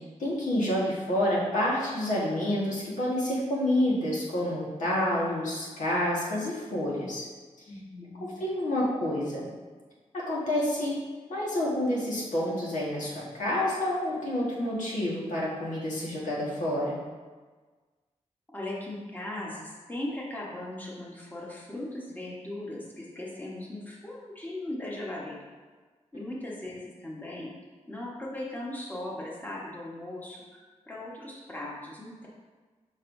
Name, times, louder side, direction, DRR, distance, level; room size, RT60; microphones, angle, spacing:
voice 1, 0.2-7.3 8.2-9.5 10.1-11.0 11.3-17.0, left 1 dB, 85° left, -6 dB, 1.6 m, -28 dB
voice 2, 7.7-8.3 18.5-25.4 26.1-27.5 27.9-32.3, left 1 dB, 15° left, -4 dB, 1.3 m, -38 dB
6.5 x 5.6 x 2.7 m, 1.4 s
wide cardioid pair, 85°, 13 cm